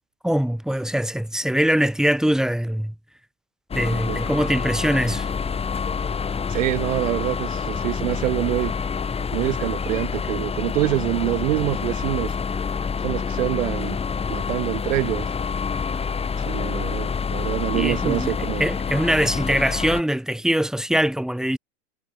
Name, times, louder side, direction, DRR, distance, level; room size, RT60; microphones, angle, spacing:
voice 1, 0.2-2.9 3.7-5.3 17.7-21.6, equal, ahead, 3.1 m, -22 dB
sound 1, 3.7-20.0, left 6 dB, 15° left, 1.2 m, -27 dB
voice 2, 6.5-8.7 9.3-12.3 13.0-14.0 14.3-15.3 16.4-18.7, right 16 dB, 75° right, 5.4 m, -25 dB
hypercardioid pair, 110°, 38 cm